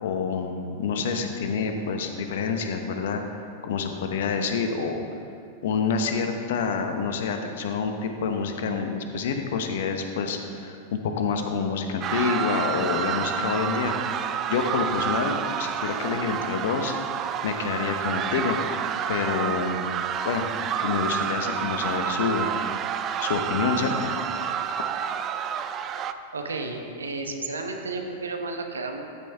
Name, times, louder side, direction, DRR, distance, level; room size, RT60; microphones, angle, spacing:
voice 1, 0.0-3.2 3.6-5.0 5.6-13.9 14.5-16.9 17.4-18.6 19.1-19.9 20.2-20.4 20.8-22.5 23.2-24.1, left 5 dB, 70° left, 5 dB, 0.9 m, -27 dB
sound 1, 12.0-26.1, right 8 dB, 35° right, 0.4 m, -29 dB
voice 2, 26.3-29.0, right 3 dB, 90° right, 4 dB, 0.9 m, -32 dB
13.5 x 5.7 x 3.4 m, 2.5 s
hypercardioid pair, 100°, 0 cm